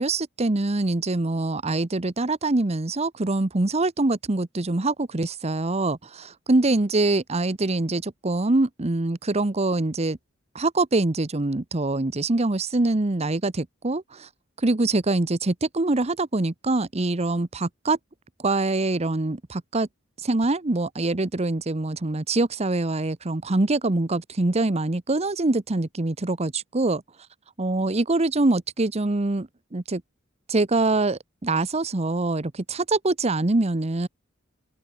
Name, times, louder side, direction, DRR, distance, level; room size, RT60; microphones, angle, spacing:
voice 1, 0.0-10.2 10.5-14.3 14.6-18.0 18.4-19.9 20.2-27.0 27.6-30.0 30.5-34.1, right 2 dB, 30° right, 0.9 m, -24 dB
open air
head